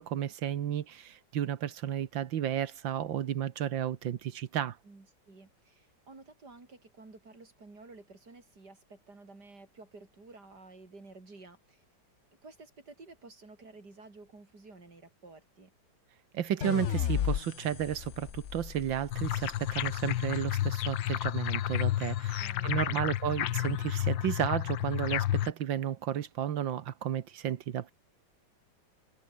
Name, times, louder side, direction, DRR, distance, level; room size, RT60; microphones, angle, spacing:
voice 1, 0.0-4.8 16.3-27.9, right 10 dB, 85° right, 1.9 m, -33 dB
voice 2, 4.8-11.8 12.4-15.7 22.4-23.1, right 3 dB, 60° right, 5.4 m, -52 dB
sound 1, 16.6-19.9, left 9 dB, 55° left, 0.9 m, -34 dB
sound 2, 19.1-25.5, left 13 dB, 80° left, 1.6 m, -31 dB
omnidirectional pair, 2.0 m